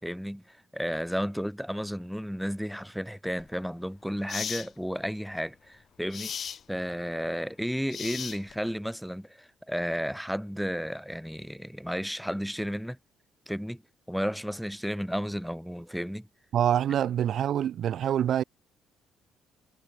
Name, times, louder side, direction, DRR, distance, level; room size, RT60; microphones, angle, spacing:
voice 1, 0.0-6.3 6.7-13.0 13.5-13.8 14.1-16.3, equal, ahead, 5.2 m, -33 dB
sound 1, 3.4-3.6 4.3-4.7 6.1-6.6 7.9-8.7, left 8 dB, 50° left, 2.6 m, -36 dB
voice 2, 16.5-18.4, right 10 dB, 65° right, 2.5 m, -25 dB
cardioid pair, 85°, 0 cm